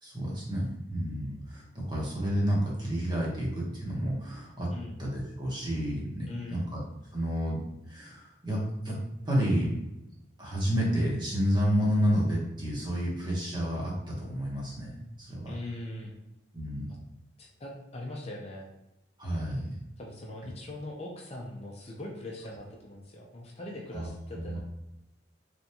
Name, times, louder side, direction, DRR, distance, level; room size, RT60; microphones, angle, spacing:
voice 1, 0.0-4.7 5.0-6.8 7.1-9.0 9.2-9.8 10.4-15.5 16.5-16.9 19.2-19.7 20.4-20.5 23.9-24.1 24.4-24.6, equal, 25° right, -4 dB, 1.1 m, -30 dB
voice 2, 6.3-6.6 15.5-16.1 17.4-18.7 20.0-24.6, left 1 dB, 35° left, -1 dB, 0.6 m, -41 dB
3.9 x 3.5 x 2.9 m, 0.89 s
head